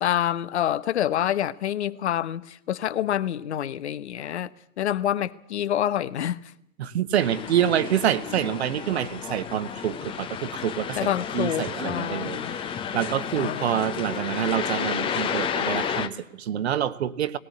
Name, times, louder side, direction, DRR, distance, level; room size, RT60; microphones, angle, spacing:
voice 1, 0.0-4.5 4.8-6.4 11.0-12.6 13.4-13.9, left 11 dB, 50° left, 1.1 m, -27 dB
voice 2, 6.8-17.4, right 10 dB, 50° right, 1.2 m, -27 dB
sound 1, 7.2-16.1, left 8 dB, 10° left, 0.9 m, -31 dB
20.0 x 18.0 x 8.4 m
figure-of-eight pair, 115°, 42 cm